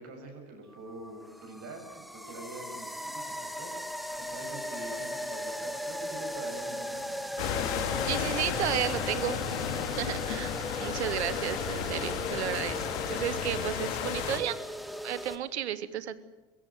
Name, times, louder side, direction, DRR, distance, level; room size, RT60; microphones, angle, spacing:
voice 1, 0.0-7.2, right 2 dB, 45° right, 3 dB, 7.0 m, -45 dB
sound 1, 0.7-15.4, equal, ahead, 2.1 m, -38 dB
sound 2, 7.4-14.4, left 8 dB, 65° left, 2.3 m, -33 dB
voice 2, 8.1-9.4 10.0-10.5 10.8-14.6 15.0-16.2, right 11 dB, 80° right, 17 dB, 1.1 m, -33 dB
22.5 x 16.0 x 8.9 m, 1.2 s
figure-of-eight pair, 65°, 33 cm